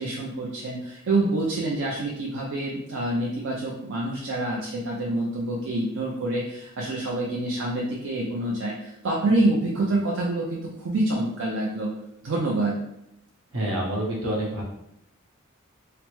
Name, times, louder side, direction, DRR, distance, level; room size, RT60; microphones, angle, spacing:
voice 1, 0.0-11.9 12.2-12.8, right 2 dB, 60° right, -3 dB, 0.5 m, -27 dB
voice 2, 13.5-14.6, right 1 dB, 75° right, -2 dB, 0.9 m, -27 dB
3.2 x 2.0 x 3.0 m, 0.80 s
head